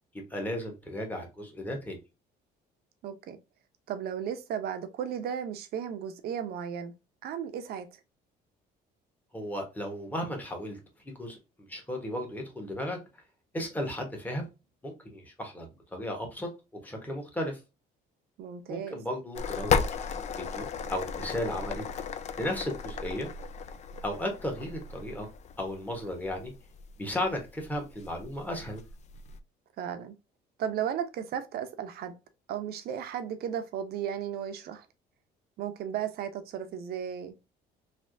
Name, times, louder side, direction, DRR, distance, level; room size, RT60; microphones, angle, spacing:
voice 1, 0.1-2.0 9.3-10.8 11.0-11.4 11.7-13.0 13.5-14.4 14.8-16.5 16.8-17.6 18.7-21.9 22.4-23.3 24.0-25.3 25.6-26.5 27.0-28.8, left 1 dB, 10° left, 1.2 m, -35 dB
voice 2, 3.0-3.4 3.9-6.9 7.2-7.9 18.4-19.0 29.8-30.2 30.6-32.1 32.5-34.9 35.6-37.4, right 8 dB, 65° right, 0.7 m, -35 dB
sound 1, 19.3-29.4, left 6 dB, 40° left, 0.4 m, -35 dB
3.3 x 2.7 x 2.6 m
cardioid pair, 110°, 17 cm